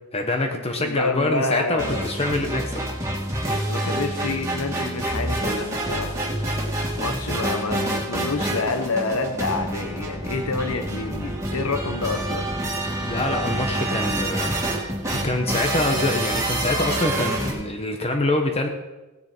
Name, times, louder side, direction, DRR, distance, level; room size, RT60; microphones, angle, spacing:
voice 1, 0.1-2.9 3.7-3.8 13.1-14.5 15.2-18.7, left 2 dB, 30° left, 4 dB, 1.1 m, -25 dB
voice 2, 0.8-2.1 3.7-6.2 7.0-12.5, left 3 dB, 85° left, 8 dB, 1.1 m, -28 dB
sound 1, 1.8-17.5, right 1 dB, 15° right, 2.7 m, -27 dB
17.0 x 9.9 x 4.5 m, 1.1 s
head